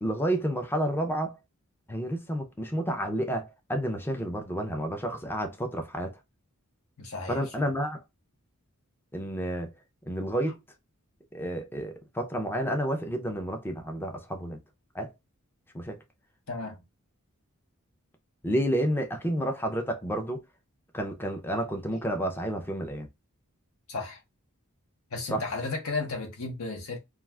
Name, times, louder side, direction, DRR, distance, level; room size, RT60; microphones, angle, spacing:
voice 1, 0.0-1.4 1.9-6.2 7.3-8.0 9.1-9.7 10.1-10.6 11.3-14.6 14.9-15.1 15.7-16.0 18.4-20.4 20.9-23.1 25.3-25.4, equal, 10° left, 0.5 m, -30 dB
voice 2, 7.0-7.4 16.5-16.8 23.9-24.2 25.1-27.0, left 3 dB, 70° left, 0.9 m, -33 dB
2.4 x 2.3 x 3.2 m
head